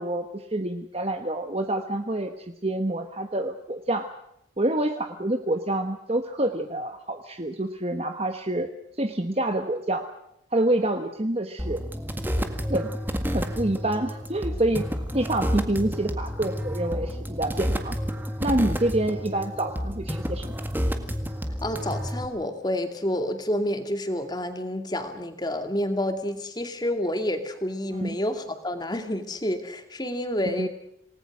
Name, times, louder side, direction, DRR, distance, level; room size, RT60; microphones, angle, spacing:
voice 1, 0.0-4.1 4.6-8.7 9.0-10.0 10.5-11.8 12.7-12.9 13.3-14.8 15.1-18.0 18.4-20.5 27.9-28.2 30.4-30.7, right 1 dB, 30° right, 6 dB, 1.3 m, -27 dB
sound 1, 11.6-22.2, equal, 10° right, 1.8 m, -30 dB
voice 2, 21.6-30.7, left 1 dB, 20° left, 7 dB, 2.4 m, -29 dB
28.0 x 19.5 x 6.2 m, 0.76 s
head